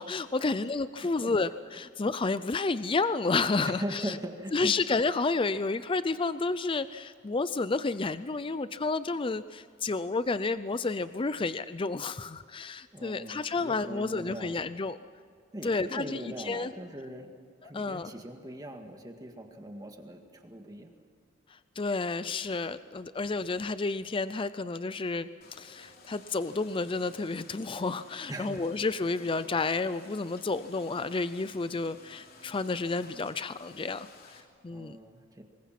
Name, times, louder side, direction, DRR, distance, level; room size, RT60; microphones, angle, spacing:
voice 1, 0.0-4.2 4.5-15.0 15.6-16.2 16.4-16.7 17.7-18.1 21.5-25.3 25.6-35.0, left 3 dB, 25° left, 13 dB, 0.5 m, -31 dB
voice 2, 1.0-1.3 3.7-4.7 12.9-14.6 15.5-17.3 17.6-20.9 28.3-28.8 34.7-35.4, right 1 dB, 20° right, 4 dB, 1.9 m, -40 dB
sound 1, 25.4-34.4, left 3 dB, 50° left, 3.1 m, -54 dB
26.5 x 21.0 x 5.9 m, 2.2 s
head